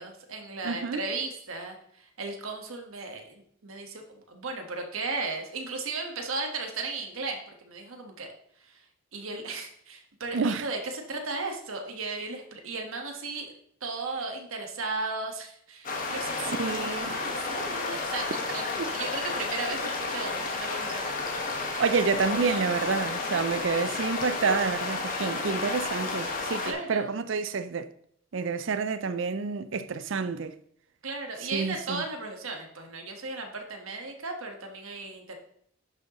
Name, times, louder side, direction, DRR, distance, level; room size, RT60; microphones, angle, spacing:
voice 1, 0.0-8.3 8.6-8.9 9.1-13.5 13.8-21.8 23.7-23.9 26.6-27.1 31.0-35.3, right 3 dB, 80° right, 1.4 m, -36 dB
voice 2, 0.6-1.0 10.3-10.7 16.6-17.1 18.8-18.9 21.8-27.9 28.3-30.6 31.5-32.0, right 5 dB, 65° right, 0.5 m, -29 dB
sound 1, 15.8-26.7, left 3 dB, 40° left, 1.2 m, -32 dB
11.0 x 6.5 x 3.0 m
head